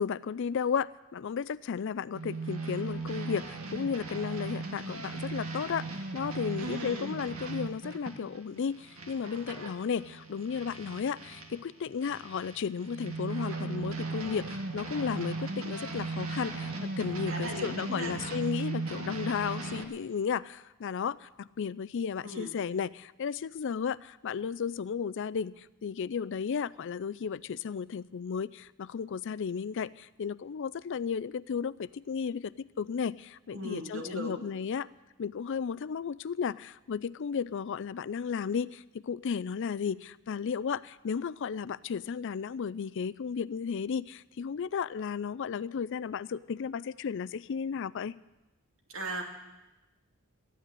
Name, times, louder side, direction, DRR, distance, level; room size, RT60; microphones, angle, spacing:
voice 1, 0.0-5.9 6.1-34.9 35.2-48.2, left 6 dB, 60° left, 19 dB, 0.4 m, -34 dB
sound 1, 2.1-11.6 12.0-19.8, right 3 dB, 85° right, 1.8 m, -37 dB
voice 2, 6.6-7.1 17.3-18.1 22.2-22.5 33.5-34.4 48.9-49.2, right 1 dB, 65° right, 1 dB, 2.8 m, -38 dB
14.0 x 9.3 x 9.7 m, 1.0 s
head